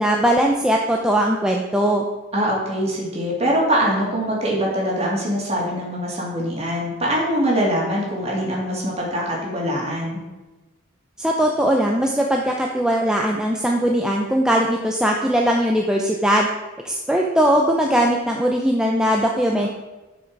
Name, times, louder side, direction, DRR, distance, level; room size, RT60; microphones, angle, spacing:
voice 1, 0.0-2.0 11.2-16.5 16.8-19.7, equal, 5° right, 0 dB, 0.6 m, -20 dB
voice 2, 2.3-10.2 19.6-19.7, equal, 30° right, -3 dB, 2.9 m, -23 dB
11.5 x 6.1 x 4.7 m, 1.1 s
head